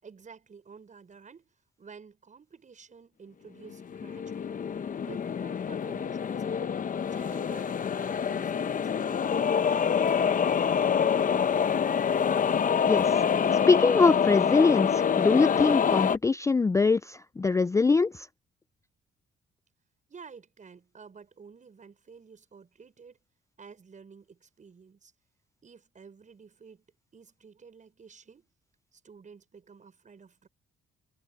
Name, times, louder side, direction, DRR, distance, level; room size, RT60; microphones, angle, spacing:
voice 1, 0.0-4.6 5.0-6.8 7.1-10.1 20.1-23.2 23.6-25.1 25.6-26.8 27.1-28.5 28.9-30.5, right 5 dB, 40° right, 6.4 m, -51 dB
sound 1, 3.7-16.2, left 7 dB, 40° left, 0.9 m, -26 dB
voice 2, 13.7-18.3, left 4 dB, 15° left, 0.4 m, -23 dB
cardioid pair, 90°, 20 cm